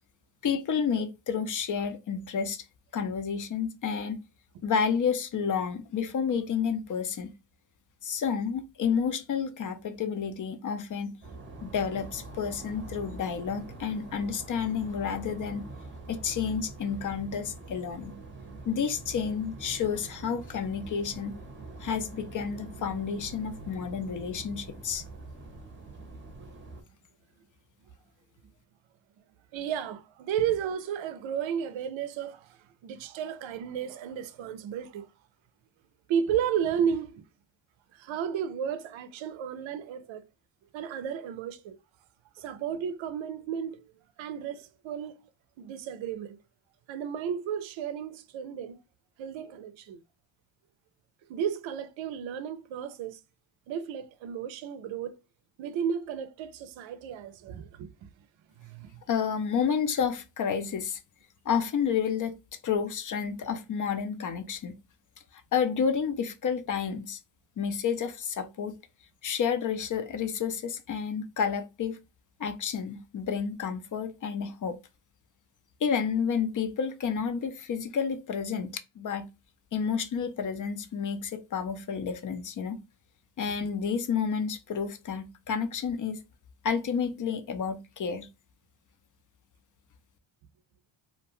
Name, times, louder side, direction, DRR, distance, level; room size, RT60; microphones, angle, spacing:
voice 1, 0.4-2.7 2.9-4.2 4.6-7.3 8.0-11.2 11.6-15.7 16.1-18.2 18.7-21.4 21.8-25.0 59.1-61.0 61.5-62.3 62.6-64.8 65.3-67.2 67.6-68.8 69.2-72.0 72.4-74.8 75.8-79.3 79.7-82.8 83.4-86.2 86.6-88.3, left 6 dB, 40° left, 0.5 m, -30 dB
sound 1, 11.2-26.8, right 3 dB, 25° right, 0.7 m, -44 dB
voice 2, 29.5-35.1 36.1-37.2 37.9-40.2 40.7-41.8 42.4-43.9 44.2-45.3 45.6-46.4 46.9-48.8 49.2-50.0 51.3-53.2 53.7-55.2 55.6-57.9 58.5-59.0, right 8 dB, 70° right, 0.6 m, -33 dB
2.5 x 2.2 x 2.9 m
cardioid pair, 100°, 48 cm